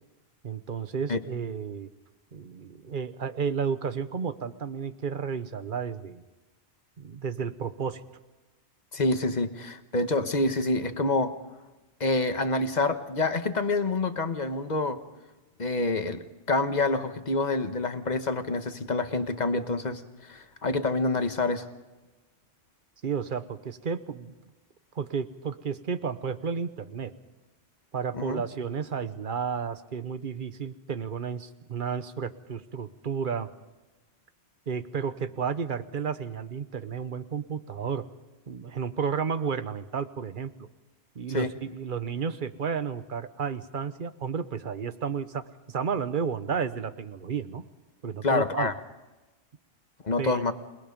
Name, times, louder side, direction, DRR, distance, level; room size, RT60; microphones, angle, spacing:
voice 1, 0.4-1.9 2.3-6.2 7.0-8.0 23.0-24.3 24.9-27.1 27.9-33.5 34.7-38.0 38.5-40.5 41.1-47.6 48.0-48.7 50.2-50.4, right 6 dB, 55° right, 12 dB, 1.1 m, -32 dB
voice 2, 8.9-11.3 12.0-15.0 15.6-21.7 28.1-28.4 41.3-41.5 48.2-48.7 50.0-50.5, left 2 dB, 45° left, 8 dB, 1.3 m, -27 dB
28.5 x 19.5 x 5.3 m, 1.1 s
omnidirectional pair, 1.1 m